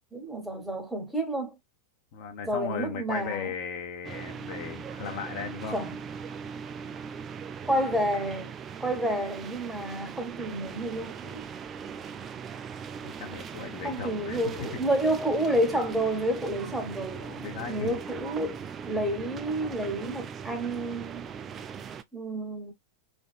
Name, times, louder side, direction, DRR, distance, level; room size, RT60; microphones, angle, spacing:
voice 1, 0.1-1.6 2.5-3.5 5.7-6.0 7.6-8.5 8.8-11.4 13.8-17.2 17.7-18.6 18.8-21.3 22.1-22.7, right 1 dB, 5° right, 0.9 m, -29 dB
voice 2, 2.1-5.8 13.0-14.7 17.2-18.0, left 6 dB, 50° left, 0.6 m, -37 dB
sound 1, 4.0-22.0, right 7 dB, 25° right, 0.3 m, -40 dB
3.4 x 2.2 x 2.4 m
figure-of-eight pair, 90°, 0 cm